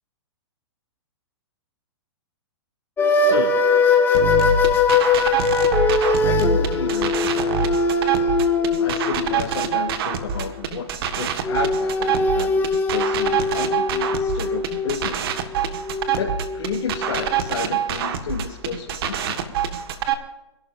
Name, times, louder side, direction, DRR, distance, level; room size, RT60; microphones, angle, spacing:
sound 1, 3.0-10.3 11.4-17.5, left 4 dB, 15° left, 1.8 m, -21 dB
voice 1, 3.3-3.6 6.2-7.7 8.8-10.9 11.1-15.6 16.2-19.5, left 7 dB, 90° left, -3 dB, 2.7 m, -32 dB
sound 2, 4.1-20.1, right 7 dB, 55° right, 1.7 m, -25 dB
27.5 x 12.0 x 2.6 m, 0.95 s
hypercardioid pair, 150°, 15 cm